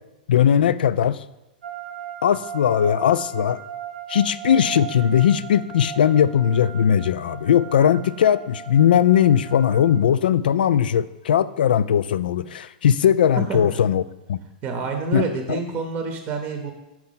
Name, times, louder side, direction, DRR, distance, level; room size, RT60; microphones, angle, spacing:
voice 1, 0.3-1.2 2.2-3.6 4.1-14.0 14.3-14.4 15.1-15.6, left 9 dB, 90° left, 16 dB, 0.3 m, -19 dB
sound 1, 1.6-10.0, right 9 dB, 80° right, 0.8 m, -37 dB
voice 2, 14.6-16.7, right 4 dB, 30° right, 5 dB, 0.7 m, -27 dB
6.2 x 4.5 x 5.6 m, 1.0 s
hypercardioid pair, 140°, 5 cm